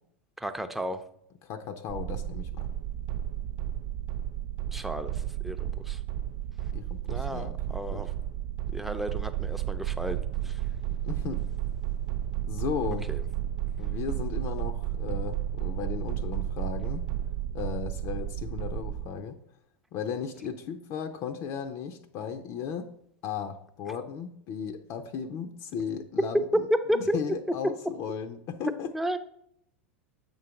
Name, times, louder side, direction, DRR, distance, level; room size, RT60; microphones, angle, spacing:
voice 1, 0.4-1.0 4.7-6.0 7.1-8.1 8.7-10.6 13.1-13.2 26.7-27.2 28.9-29.2, equal, 5° right, 8 dB, 0.6 m, -32 dB
voice 2, 1.4-2.7 6.7-8.0 11.0-11.4 12.5-13.1 13.8-17.1 17.5-19.4 19.9-22.9 23.2-26.7 26.9-28.9, left 7 dB, 45° left, 7 dB, 0.6 m, -36 dB
sound 1, 1.9-19.1, right 11 dB, 50° right, 0.4 m, -32 dB
7.4 x 3.9 x 5.8 m, 0.73 s
figure-of-eight pair, 90°, 7 cm